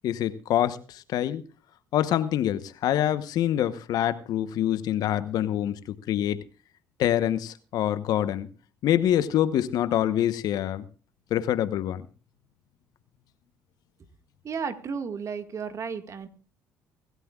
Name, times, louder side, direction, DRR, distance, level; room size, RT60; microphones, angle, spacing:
voice 1, 0.0-1.4 1.9-6.4 7.0-8.5 8.8-10.9 11.3-12.1, left 11 dB, 65° left, 1.0 m, -25 dB
voice 2, 14.4-16.3, right 6 dB, 45° right, 1.8 m, -33 dB
24.0 x 13.0 x 2.4 m
supercardioid pair, 75°, 7 cm